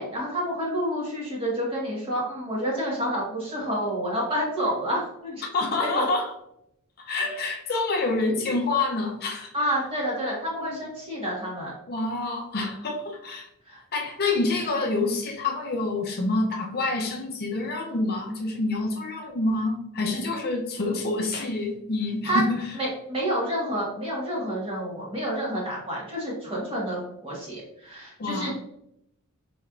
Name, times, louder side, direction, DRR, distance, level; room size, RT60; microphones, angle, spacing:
voice 1, 0.0-5.4 5.9-6.1 9.5-11.7 13.7-13.8 22.2-22.4 22.8-28.5, equal, 25° right, -5 dB, 1.4 m, -29 dB
voice 2, 5.5-6.3 7.0-9.5 10.6-10.8 11.9-13.5 13.9-22.7 28.2-28.5, left 2 dB, 45° left, 1 dB, 0.5 m, -27 dB
4.1 x 3.2 x 2.4 m, 0.77 s
head